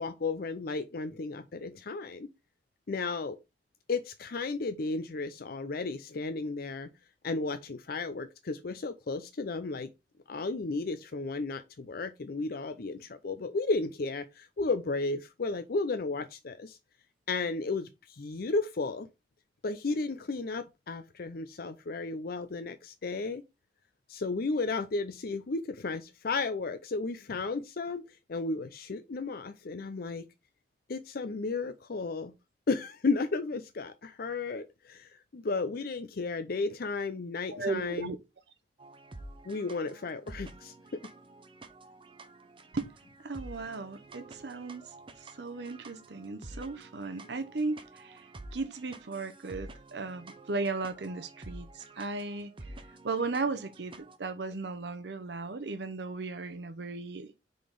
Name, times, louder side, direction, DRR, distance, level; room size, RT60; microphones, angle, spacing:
voice 1, 0.0-2.3 2.9-3.4 3.9-6.9 7.2-9.9 10.3-16.8 17.3-19.1 19.6-23.4 24.1-28.0 28.3-30.3 30.9-32.3 32.7-38.1 39.4-41.0, left 3 dB, 55° left, 0.5 m, -33 dB
voice 2, 37.5-38.2 42.7-42.9 43.2-48.2 48.5-52.5 53.0-57.3, right 3 dB, 70° right, 0.7 m, -36 dB
sound 1, 38.8-54.2, right 2 dB, 30° right, 0.7 m, -49 dB
5.1 x 4.0 x 5.1 m
head